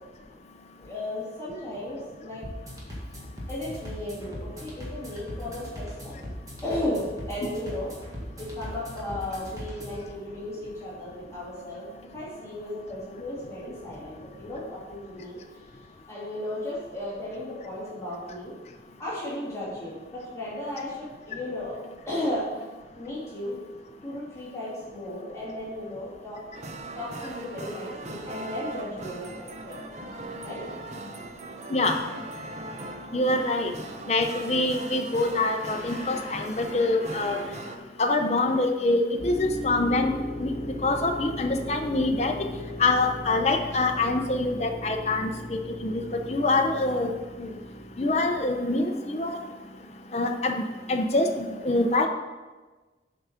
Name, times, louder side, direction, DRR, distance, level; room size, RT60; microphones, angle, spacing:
voice 1, 0.8-2.4 3.5-6.2 6.6-7.9 8.4-11.9 12.1-15.4 16.1-18.5 19.0-21.8 22.1-22.4 22.9-23.6 24.0-26.4 27.0-29.8 30.4-30.6, left 1 dB, 15° left, -9 dB, 2.5 m, -35 dB
sound 1, 2.4-10.0, equal, 20° right, 1.8 m, -39 dB
sound 2, 26.5-37.8, right 2 dB, 40° right, 0.6 m, -39 dB
voice 2, 33.1-33.7 34.1-37.4 38.0-40.1 40.4-40.5 40.8-42.3 42.8-46.0 46.3-47.1 47.4-47.5 48.0-49.4 50.1-50.6 50.9-52.1, left 2 dB, 35° left, 3 dB, 0.6 m, -25 dB
sound 3, 39.2-48.7, left 1 dB, 70° left, 1.2 m, -38 dB
7.8 x 5.0 x 5.7 m, 1.3 s
head